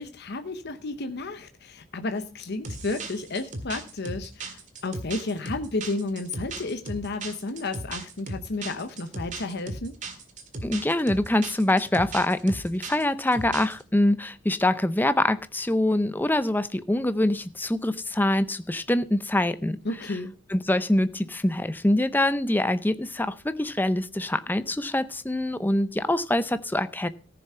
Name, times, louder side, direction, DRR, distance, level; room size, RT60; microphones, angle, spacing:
voice 1, 0.0-9.9 19.8-20.3, left 3 dB, 55° left, 8 dB, 0.8 m, -32 dB
sound 1, 2.6-13.8, right 2 dB, 40° right, 1.9 m, -37 dB
voice 2, 10.6-19.8 20.1-20.2 20.5-27.1, left 1 dB, 10° left, 13 dB, 0.6 m, -24 dB
14.5 x 6.9 x 5.6 m, 0.38 s
head